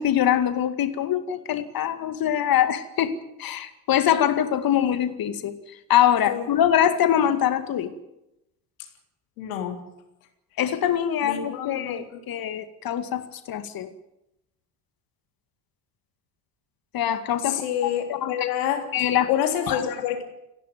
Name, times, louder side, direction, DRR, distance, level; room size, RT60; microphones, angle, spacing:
voice 1, 0.0-5.5 5.9-7.9 10.6-13.9 16.9-17.6 18.2-18.3 18.9-19.3 19.7-19.8, left 10 dB, 45° left, 10 dB, 2.3 m, -23 dB
voice 2, 9.4-9.8 11.2-12.2 17.4-20.2, left 10 dB, 65° left, 4 dB, 3.5 m, -28 dB
29.5 x 11.5 x 9.5 m, 0.89 s
figure-of-eight pair, 55°, 49 cm